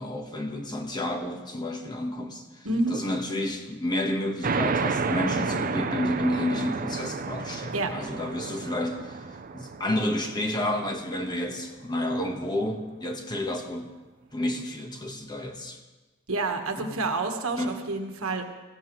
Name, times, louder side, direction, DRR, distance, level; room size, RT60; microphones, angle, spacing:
voice 1, 0.0-9.2 9.5-13.9 14.3-15.8 16.8-17.0 17.6-17.8, left 1 dB, 20° left, 3 dB, 1.3 m, -30 dB
voice 2, 2.6-3.0 7.7-7.9 16.3-18.4, right 3 dB, 80° right, 5 dB, 1.4 m, -28 dB
sound 1, 4.4-11.6, right 4 dB, 40° right, 0.6 m, -31 dB
18.0 x 16.0 x 3.2 m, 1.2 s
head